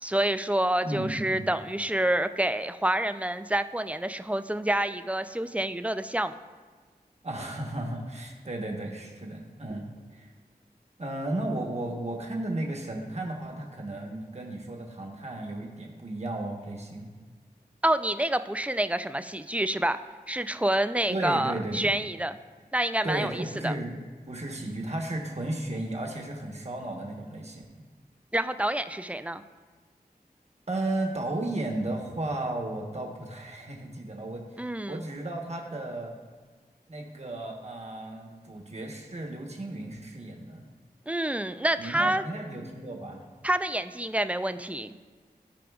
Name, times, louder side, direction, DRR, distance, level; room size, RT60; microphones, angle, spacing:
voice 1, 0.0-6.3 17.8-20.0 20.3-22.3 22.7-23.7 28.3-29.4 34.6-35.0 41.1-42.2 43.4-44.9, right 1 dB, 10° right, 11 dB, 0.3 m, -28 dB
voice 2, 0.8-1.5 7.2-10.3 11.0-17.1 21.1-22.0 23.0-23.9 24.2-27.6 30.7-36.1 36.9-40.6 41.8-43.3, right 1 dB, 40° right, 0 dB, 1.1 m, -34 dB
14.5 x 4.9 x 2.3 m, 1.5 s
wide cardioid pair, 40°, 17 cm